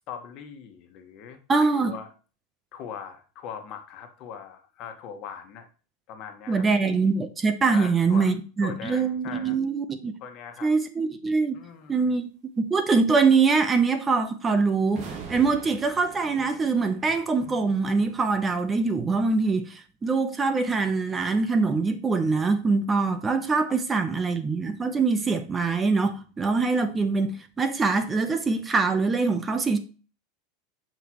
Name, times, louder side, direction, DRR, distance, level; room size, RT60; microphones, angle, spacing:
voice 1, 0.1-1.4 1.8-2.1 2.7-5.7 6.1-6.6 7.7-8.3 8.6-9.6 10.2-10.7 11.5-12.1 23.7-23.8, left 7 dB, 50° left, 1.5 m, -40 dB
voice 2, 1.5-1.9 6.5-10.1 10.6-11.6 11.9-12.2 12.6-29.8, right 4 dB, 20° right, 0.8 m, -23 dB
sound 1, 14.9-18.1, right 5 dB, 50° right, 2.1 m, -43 dB
8.1 x 5.2 x 3.1 m
supercardioid pair, 120°, 0 cm